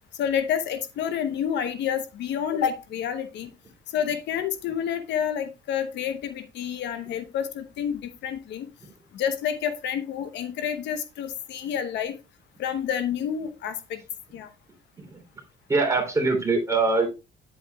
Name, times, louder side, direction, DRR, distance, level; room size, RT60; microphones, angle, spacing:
voice 1, 0.2-3.5 3.9-8.7 9.1-12.2 12.6-14.0 14.3-14.5, left 8 dB, 70° left, 10 dB, 0.9 m, -29 dB
voice 2, 15.7-17.1, right 3 dB, 15° right, 1 dB, 3.1 m, -22 dB
9.6 x 7.8 x 2.3 m, 0.27 s
cardioid pair, 115°, 19 cm